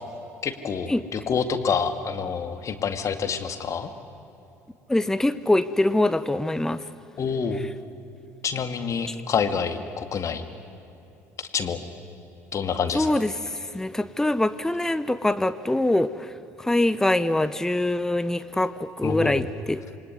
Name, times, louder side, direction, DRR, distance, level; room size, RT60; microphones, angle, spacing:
voice 1, 0.4-3.9 7.2-7.6 8.4-10.4 11.4-11.8 12.5-13.1 19.0-19.5, left 6 dB, 40° left, 9 dB, 2.1 m, -27 dB
voice 2, 4.9-6.8 9.1-9.2 12.9-16.3 16.6-19.8, left 1 dB, 5° left, 13 dB, 0.8 m, -24 dB
26.5 x 22.5 x 9.7 m, 2.9 s
figure-of-eight pair, 55°, 8 cm